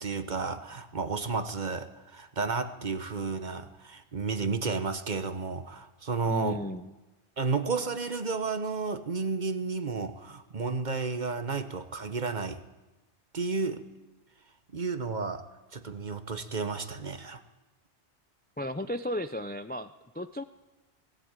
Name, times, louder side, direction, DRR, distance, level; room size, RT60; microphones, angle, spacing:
voice 1, 0.0-6.6 7.4-12.6 13.3-13.8 14.7-15.4 15.7-17.4, right 4 dB, 45° right, 10 dB, 1.2 m, -32 dB
voice 2, 6.2-6.9 18.6-20.4, left 1 dB, 15° left, 11 dB, 0.4 m, -35 dB
17.5 x 17.0 x 9.0 m, 1.1 s
omnidirectional pair, 1.1 m